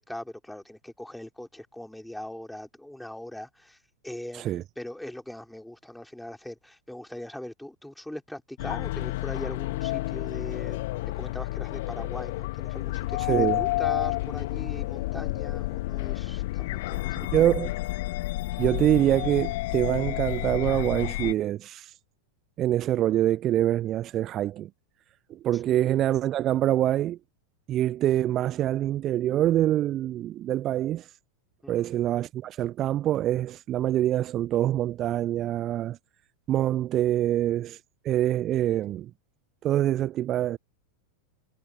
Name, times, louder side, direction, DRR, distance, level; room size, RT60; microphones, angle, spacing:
voice 1, 0.0-3.8 4.0-10.8 11.1-17.5 25.5-25.8 31.6-31.9, left 1 dB, 5° left, 4.9 m, -40 dB
sound 1, 8.6-21.3, left 19 dB, 50° left, 2.3 m, -30 dB
voice 2, 13.2-13.6 17.3-17.7 18.6-21.9 22.6-24.7 25.3-27.2 27.7-31.1 31.7-36.0 36.5-37.8 38.0-39.1 39.6-40.6, right 12 dB, 30° right, 0.6 m, -25 dB
figure-of-eight pair, 90°, 0 cm